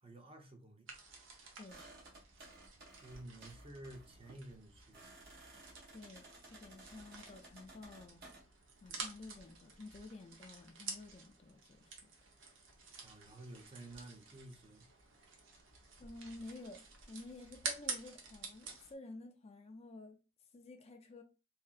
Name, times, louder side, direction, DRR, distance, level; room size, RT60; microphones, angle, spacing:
voice 1, 0.0-0.9 3.0-5.1 13.0-14.9, right 1 dB, 30° right, 0.7 m, -52 dB
sound 1, 0.9-18.9, right 4 dB, 70° right, 0.9 m, -50 dB
sound 2, 1.7-8.4, right 2 dB, 55° right, 1.5 m, -57 dB
voice 2, 5.9-8.2 8.8-12.1 16.0-20.2 20.5-21.2, left 2 dB, 30° left, 0.4 m, -52 dB
4.2 x 2.7 x 2.4 m
head